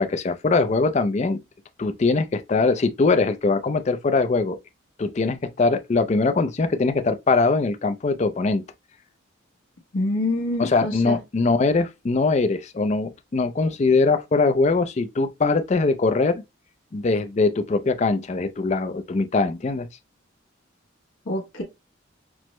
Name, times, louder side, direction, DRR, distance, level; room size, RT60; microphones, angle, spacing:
voice 1, 0.0-1.4 1.8-4.6 5.0-8.6 10.6-16.4 16.9-19.9, left 3 dB, 35° left, 0.3 m, -22 dB
voice 2, 9.9-11.2 21.3-21.6, left 2 dB, 75° left, 1.0 m, -26 dB
6.0 x 2.0 x 3.0 m
head